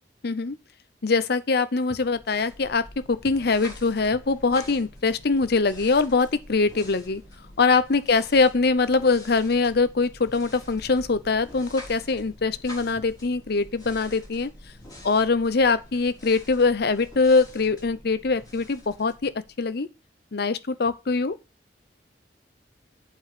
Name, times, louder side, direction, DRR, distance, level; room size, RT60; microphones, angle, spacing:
voice 1, 0.2-0.6 1.0-7.2 7.6-14.5 15.0-19.3 19.6-19.9 20.3-21.4, left 4 dB, 65° left, 0.7 m, -23 dB
sound 1, 2.0-19.8, left 1 dB, 25° left, 4.1 m, -46 dB
8.3 x 4.7 x 5.9 m
head